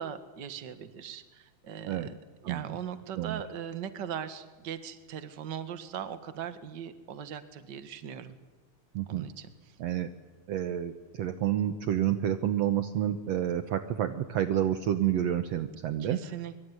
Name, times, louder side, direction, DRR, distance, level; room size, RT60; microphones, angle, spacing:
voice 1, 0.0-2.2 2.4-8.4 9.1-9.8 16.0-16.6, right 8 dB, 40° right, 11 dB, 2.0 m, -40 dB
voice 2, 2.4-2.8 3.2-3.4 8.9-9.3 9.8-10.1 10.5-16.3, right 11 dB, 65° right, 10 dB, 2.0 m, -29 dB
24.5 x 24.0 x 9.7 m, 1.2 s
omnidirectional pair, 3.5 m